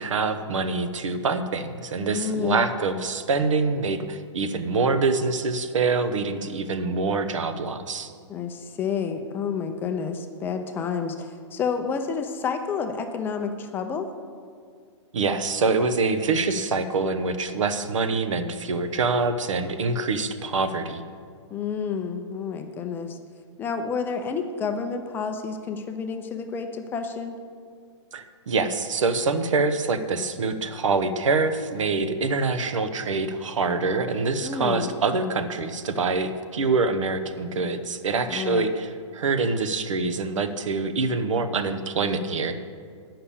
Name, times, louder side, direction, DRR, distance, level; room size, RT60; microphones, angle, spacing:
voice 1, 0.0-8.1 15.1-21.0 28.1-42.6, right 4 dB, 85° right, 10 dB, 0.8 m, -25 dB
voice 2, 2.1-2.6 8.3-14.1 21.5-23.2 23.6-27.4 34.4-34.9 38.3-38.7, left 6 dB, 15° left, 6 dB, 0.4 m, -29 dB
8.4 x 5.8 x 7.0 m, 2.1 s
hypercardioid pair, 150°, 16 cm